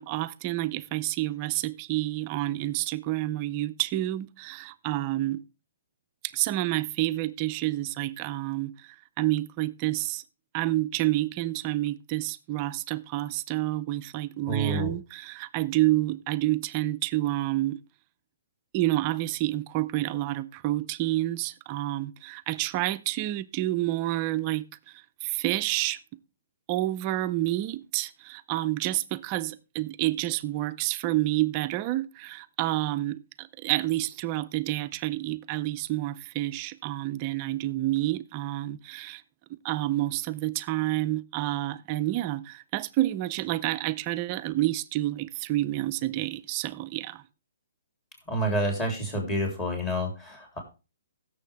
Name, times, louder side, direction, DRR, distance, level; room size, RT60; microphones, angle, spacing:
voice 1, 0.0-5.4 6.2-10.2 10.5-17.8 18.7-26.0 26.7-39.2 39.6-47.2, right 16 dB, 30° right, 0.5 m, -29 dB
voice 2, 14.5-14.9 48.3-50.6, right 1 dB, 15° left, 3.5 m, -28 dB
15.5 x 7.0 x 3.5 m
hypercardioid pair, 155°, 0 cm